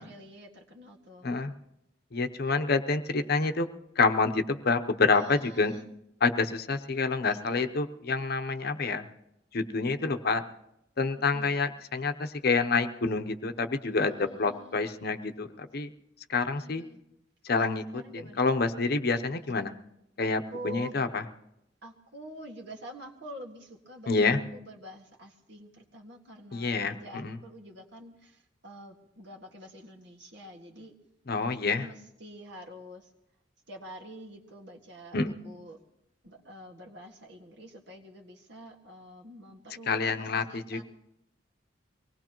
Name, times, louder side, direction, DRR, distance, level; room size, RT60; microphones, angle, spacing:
voice 1, 0.0-1.3 5.1-5.8 7.2-7.7 11.2-11.6 13.9-14.8 16.4-17.0 17.6-18.6 20.2-20.9 21.8-30.9 31.5-33.1 33.7-35.8 36.2-40.8, equal, 70° right, 2 dB, 1.8 m, -47 dB
voice 2, 2.1-3.7 4.0-5.7 6.2-9.0 9.5-10.4 11.0-15.9 16.3-16.8 17.4-19.7 20.2-21.2 24.1-24.4 26.5-27.4 31.3-31.9 35.1-35.3 39.9-40.8, left 4 dB, 55° left, 8 dB, 0.8 m, -28 dB
24.0 x 18.5 x 3.0 m, 0.85 s
head